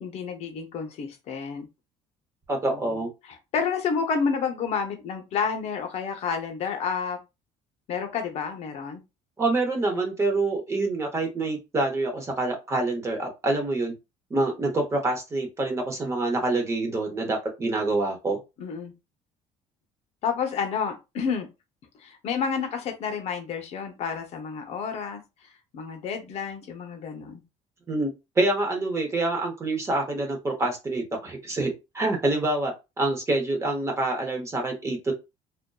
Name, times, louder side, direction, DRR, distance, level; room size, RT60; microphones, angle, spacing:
voice 1, 0.0-1.7 2.7-2.9 3.3-7.2 7.9-9.0 18.6-18.9 20.2-21.5 22.0-25.2 25.7-27.4, left 6 dB, 55° left, 5 dB, 0.6 m, -30 dB
voice 2, 2.5-3.1 9.4-13.9 14.3-18.4 27.9-28.1 28.4-35.1, right 2 dB, 20° right, 2 dB, 0.7 m, -26 dB
2.5 x 2.1 x 2.2 m, 0.25 s
cardioid pair, 140°, 13 cm